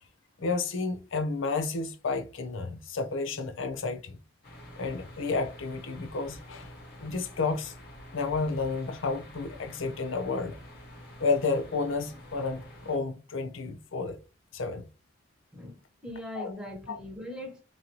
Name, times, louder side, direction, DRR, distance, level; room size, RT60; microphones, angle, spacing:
voice 1, 0.4-4.2 4.8-6.7 7.0-7.7 8.1-10.6 11.2-14.2 14.5-14.9 16.3-16.5 16.9-17.0, left 4 dB, 85° left, 0.6 m, -31 dB
sound 1, 4.4-13.0, left 1 dB, 55° left, 1.3 m, -48 dB
voice 2, 15.5-17.6, left 1 dB, 5° right, 1.0 m, -40 dB
3.8 x 3.1 x 2.7 m
head